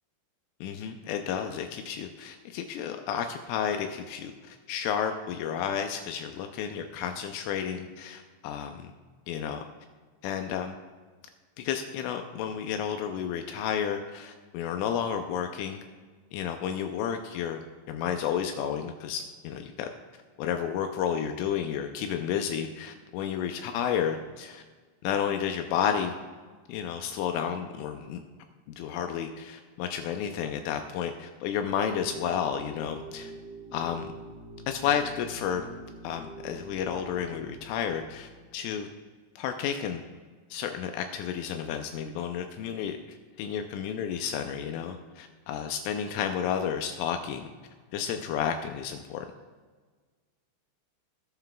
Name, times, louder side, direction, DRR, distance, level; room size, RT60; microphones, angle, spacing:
voice 1, 0.6-8.9 9.3-9.6 10.2-10.8 11.6-15.8 16.3-17.6 17.9-19.9 20.4-24.6 25.0-26.2 26.7-28.2 28.7-33.3 33.7-34.1 34.7-35.7 36.0-38.9 39.4-40.0 40.5-47.5 47.9-49.3, left 8 dB, 85° left, 5 dB, 2.9 m, -31 dB
sound 1, 31.6-38.4, right 2 dB, 60° right, 2.9 m, -45 dB
19.5 x 6.9 x 2.3 m, 1.5 s
omnidirectional pair, 5.9 m